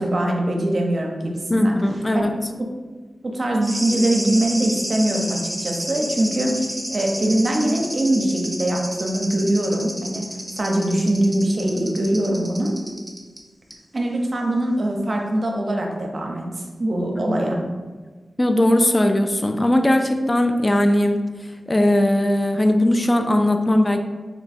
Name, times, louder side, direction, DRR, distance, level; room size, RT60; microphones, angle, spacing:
voice 1, 0.0-1.8 2.1-2.3 3.2-10.3 10.6-12.8 13.9-17.6, right 1 dB, 55° right, 1 dB, 0.6 m, -22 dB
voice 2, 1.5-2.3 17.2-17.4 18.4-21.2 21.7-24.0, left 1 dB, 30° left, 5 dB, 0.3 m, -19 dB
sound 1, 3.6-13.4 13.7-13.8, equal, 5° right, 0.8 m, -31 dB
2.9 x 2.3 x 4.1 m, 1.3 s
cardioid pair, 50°, 0 cm